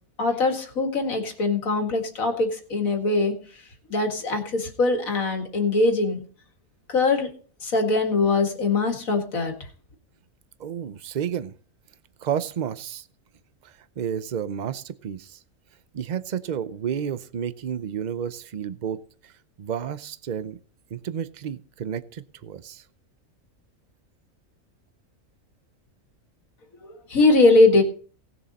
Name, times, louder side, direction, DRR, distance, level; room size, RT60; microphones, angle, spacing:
voice 1, 0.2-3.3 3.9-6.2 6.9-7.3 7.6-9.5 27.1-27.8, left 3 dB, 80° left, 4 dB, 2.4 m, -21 dB
voice 2, 10.6-11.5 12.2-13.0 13.6-15.4 15.9-19.3 19.6-20.6 20.9-22.8, right 8 dB, 45° right, 14 dB, 0.6 m, -31 dB
18.0 x 7.0 x 4.1 m, 0.42 s
omnidirectional pair, 1.4 m